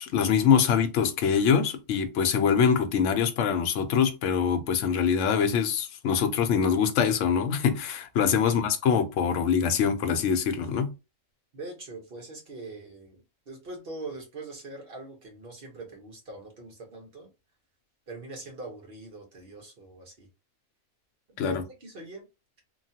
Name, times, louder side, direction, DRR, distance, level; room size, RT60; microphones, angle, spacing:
voice 1, 0.0-10.9 21.4-21.6, left 7 dB, 70° left, 0.9 m, -24 dB
voice 2, 8.3-8.6 10.6-10.7 11.5-17.3 18.1-20.3 21.3-22.3, right 3 dB, 45° right, 1.2 m, -42 dB
3.0 x 2.3 x 2.7 m
omnidirectional pair, 1.4 m